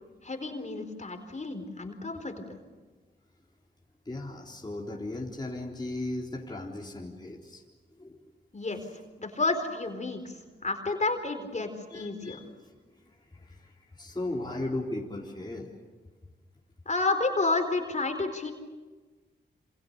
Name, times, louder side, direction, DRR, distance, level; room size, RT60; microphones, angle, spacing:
voice 1, 0.2-2.4 8.5-8.8 9.2-10.3 10.6-12.4 16.9-18.5, left 3 dB, 40° left, 6 dB, 4.2 m, -30 dB
voice 2, 4.1-7.6 7.9-8.2 11.9-12.5 12.8-15.8, left 2 dB, 20° left, -2 dB, 3.8 m, -37 dB
28.0 x 26.5 x 6.8 m, 1.3 s
cardioid pair, 70°, 19 cm